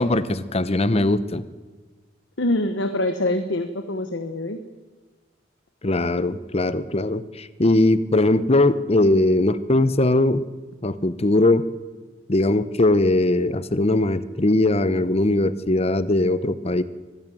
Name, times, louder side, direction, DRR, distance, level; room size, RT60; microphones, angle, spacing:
voice 1, 0.0-1.4 5.8-10.4 10.8-11.7 12.3-16.8, left 2 dB, 35° left, 14 dB, 0.9 m, -20 dB
voice 2, 2.4-4.6, left 1 dB, 70° left, 8 dB, 1.3 m, -24 dB
24.0 x 15.0 x 9.2 m, 1.4 s
head